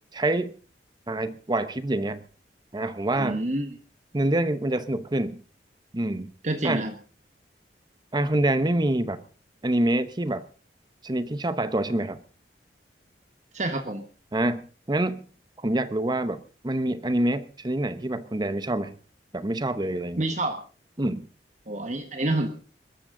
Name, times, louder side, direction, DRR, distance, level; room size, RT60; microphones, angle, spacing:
voice 1, 0.1-0.5 1.1-2.2 2.7-3.4 4.1-5.4 5.9-6.3 6.6-6.8 8.1-9.2 9.6-10.4 11.0-12.2 14.3-15.2 15.6-18.9 19.3-20.3 21.0-21.3, right 1 dB, 25° right, 12 dB, 0.8 m, -26 dB
voice 2, 3.1-3.8 6.4-6.9 13.5-14.0 20.2-20.6 21.7-22.5, right 2 dB, 40° right, 7 dB, 1.3 m, -28 dB
22.0 x 13.0 x 3.8 m, 0.37 s
head